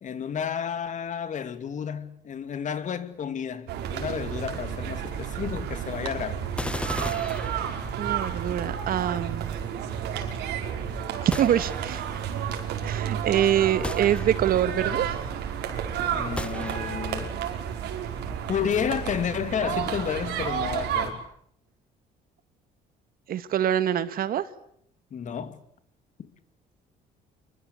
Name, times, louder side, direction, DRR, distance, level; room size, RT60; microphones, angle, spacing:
voice 1, 0.0-6.5 16.1-17.4 18.5-21.2 25.1-25.6 26.2-26.3, left 8 dB, 45° left, 2.7 m, -31 dB
sound 1, 3.7-21.1, right 8 dB, 85° right, 5.5 m, -31 dB
sound 2, 6.6-8.2 11.3-12.2 13.8-14.8 16.4-17.2, left 1 dB, 5° left, 1.3 m, -36 dB
voice 2, 8.0-9.6 11.2-12.2 12.8-15.2 23.3-24.4, right 10 dB, 60° right, 1.8 m, -25 dB
27.5 x 23.5 x 8.3 m
cardioid pair, 110°, 17 cm